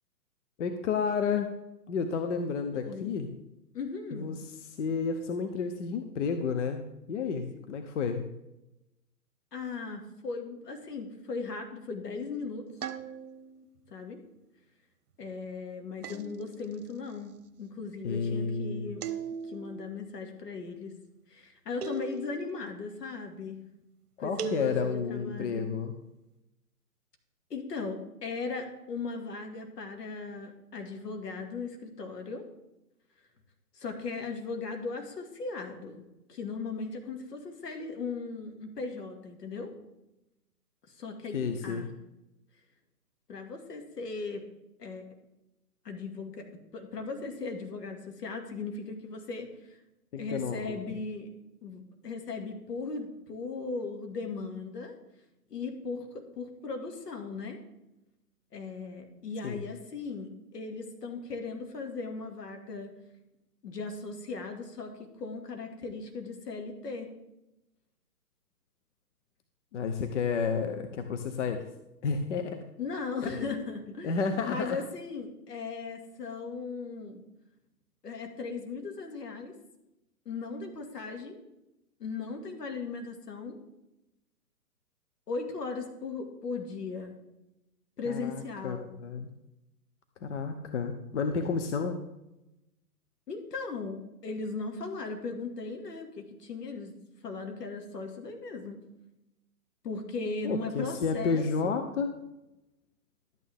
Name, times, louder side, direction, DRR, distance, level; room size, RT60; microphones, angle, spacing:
voice 1, 0.6-1.5 1.9-3.3 4.1-8.2 18.0-18.9 24.2-25.9 41.3-41.9 50.1-50.8 59.4-59.6 69.7-71.6 72.0-72.6 73.2-73.6 74.0-74.8 88.0-89.3 90.2-92.0 100.4-102.1, left 5 dB, 45° left, 7 dB, 0.9 m, -31 dB
voice 2, 2.7-3.1 3.7-4.3 9.5-12.7 13.9-14.2 15.2-17.3 17.6-19.0 19.4-21.0 21.3-23.7 24.2-24.7 25.1-25.7 27.5-32.4 33.7-36.0 36.3-39.7 40.9-41.9 43.3-44.5 44.8-45.1 45.8-49.8 50.2-51.3 51.6-55.0 55.5-57.6 58.5-62.9 63.6-67.1 72.8-74.1 74.4-77.2 78.0-79.5 80.3-81.4 82.0-83.6 85.3-87.1 88.0-88.9 93.3-96.9 97.2-98.8 99.8-101.8, left 4 dB, 75° left, 4 dB, 2.3 m, -38 dB
sound 1, 12.8-13.6 16.0-16.8 19.0-19.8 21.8-22.6 24.4-25.2, right 6 dB, 65° right, 1.0 m, -38 dB
12.0 x 8.9 x 3.5 m, 0.92 s
hypercardioid pair, 140°, 48 cm